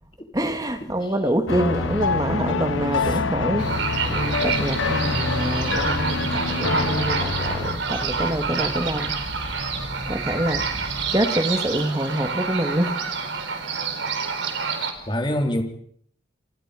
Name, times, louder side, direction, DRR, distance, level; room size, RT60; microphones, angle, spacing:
voice 1, 0.3-9.2 10.1-13.0, right 1 dB, 20° right, 2.3 m, -26 dB
sound 1, 1.5-7.8, left 4 dB, 85° left, 1.1 m, -26 dB
sound 2, 1.7-11.1, equal, 50° right, 5.5 m, -36 dB
voice 2, 2.9-3.3 15.1-15.6, left 1 dB, 25° left, 3.7 m, -26 dB
sound 3, 3.6-14.9, right 5 dB, 75° right, 4.4 m, -28 dB
28.5 x 28.0 x 5.3 m
head